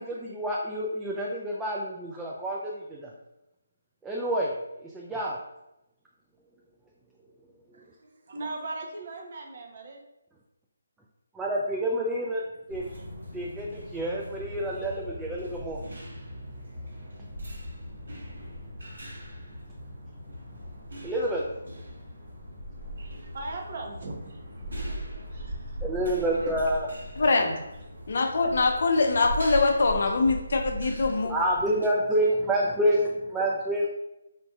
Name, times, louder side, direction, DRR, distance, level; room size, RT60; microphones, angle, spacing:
voice 1, 0.0-3.1 4.0-4.5 4.8-5.4 11.3-12.4 12.7-12.8 13.3-15.8 21.0-21.5 24.8-25.0 25.8-26.9 31.2-33.9, right 1 dB, 5° right, -4 dB, 0.3 m, -28 dB
voice 2, 7.7-10.0 23.0-24.4 24.9-25.8 26.1-26.5, right 2 dB, 50° right, 1 dB, 0.8 m, -40 dB
sound 1, 12.7-31.9, equal, 75° right, 1.4 m, -39 dB
voice 3, 27.2-27.6 28.1-31.3, left 3 dB, 60° left, 4 dB, 0.6 m, -23 dB
4.6 x 2.5 x 2.3 m, 0.92 s
figure-of-eight pair, 155°, 0 cm